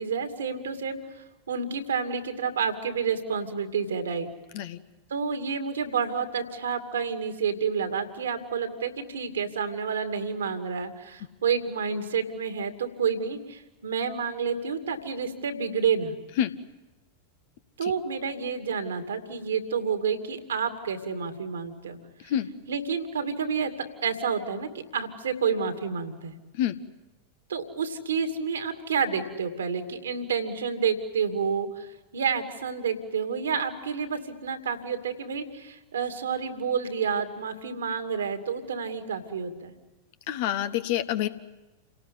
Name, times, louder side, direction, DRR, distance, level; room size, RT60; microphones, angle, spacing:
voice 1, 0.0-4.3 5.1-16.1 17.8-22.0 22.2-22.3 22.7-23.7 24.0-26.3 27.5-39.7, right 6 dB, 65° right, 7 dB, 2.4 m, -29 dB
voice 2, 40.3-41.3, left 11 dB, 50° left, 12 dB, 1.2 m, -27 dB
29.0 x 18.0 x 9.4 m, 1.1 s
figure-of-eight pair, 90°, 0 cm